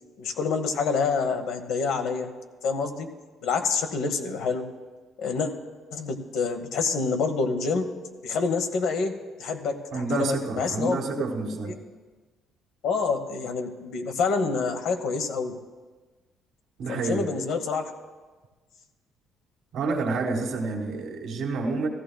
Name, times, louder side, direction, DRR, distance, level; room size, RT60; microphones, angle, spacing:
voice 1, 0.2-2.3 2.6-3.1 3.4-4.6 5.2-5.5 5.9-7.9 8.2-11.2 11.6-11.7 12.8-15.6 16.9-17.9, left 4 dB, 80° left, 6 dB, 1.0 m, -27 dB
voice 2, 9.9-11.7 16.8-17.3 19.7-21.9, right 3 dB, 70° right, 1 dB, 1.7 m, -28 dB
15.5 x 14.0 x 2.3 m, 1.3 s
cardioid pair, 100°, 0 cm